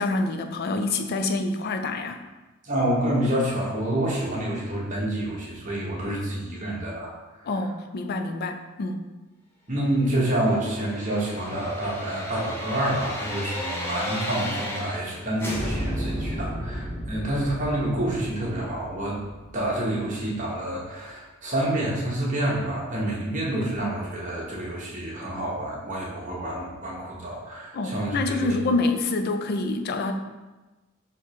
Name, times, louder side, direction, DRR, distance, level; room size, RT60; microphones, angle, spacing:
voice 1, 0.0-2.2 7.5-9.0 27.7-30.1, left 2 dB, 50° left, 6 dB, 0.4 m, -27 dB
voice 2, 2.6-7.1 9.7-19.2 19.5-28.5, right 1 dB, 40° right, -4 dB, 1.1 m, -28 dB
sound 1, 10.4-15.1 15.4-20.3 20.6-20.7, equal, 10° left, 0.6 m, -34 dB
3.6 x 2.9 x 4.7 m, 1.2 s
head